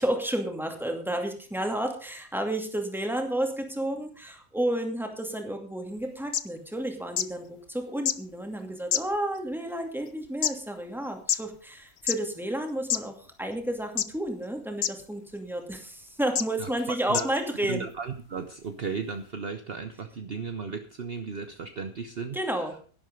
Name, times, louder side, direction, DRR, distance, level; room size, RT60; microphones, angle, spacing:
voice 1, 0.0-17.9 22.3-22.8, right 1 dB, ahead, 3 dB, 2.3 m, -31 dB
sound 1, 6.0-6.1 6.3-6.4 7.2-7.3 8.0-8.2 8.9-9.4 10.1-10.5 11.3-11.4 12.0-12.2 12.9-13.0 14.0-14.3 14.8-14.9 15.7-15.8 16.3-16.4 17.1-17.3 18.1-18.2, left 9 dB, 55° left, 0.9 m, -26 dB
voice 2, 17.7-22.7, right 5 dB, 50° right, 8 dB, 1.1 m, -35 dB
11.5 x 11.0 x 5.2 m, 0.40 s
omnidirectional pair, 1.5 m